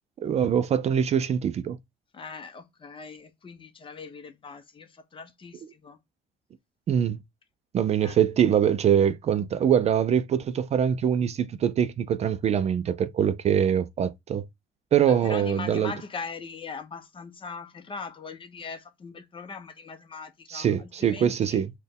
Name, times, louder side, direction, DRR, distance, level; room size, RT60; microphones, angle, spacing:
voice 1, 0.2-1.8 6.9-7.2 7.7-14.5 14.9-15.9 20.5-21.7, right 8 dB, 40° right, 0.4 m, -23 dB
voice 2, 2.1-6.0 8.0-8.2 15.1-21.6, left 4 dB, 30° left, 0.7 m, -40 dB
4.1 x 2.2 x 3.4 m
cardioid pair, 110°, 17 cm